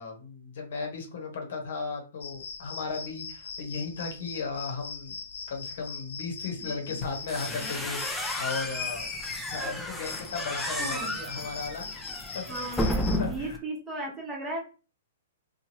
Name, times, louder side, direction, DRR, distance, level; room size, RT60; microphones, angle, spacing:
voice 1, 0.0-5.2 5.5-9.1 9.5-11.9 12.3-13.6, left 4 dB, 65° left, 3 dB, 0.9 m, -36 dB
sound 1, 2.2-13.2, left 5 dB, 85° left, 0.6 m, -41 dB
voice 2, 6.6-7.0 10.8-11.1 12.5-14.6, right 2 dB, 15° right, -2 dB, 1.0 m, -36 dB
sound 2, 7.0-13.6, left 1 dB, 5° left, 0.4 m, -33 dB
3.0 x 2.2 x 2.9 m, 0.35 s
hypercardioid pair, 155°, 0 cm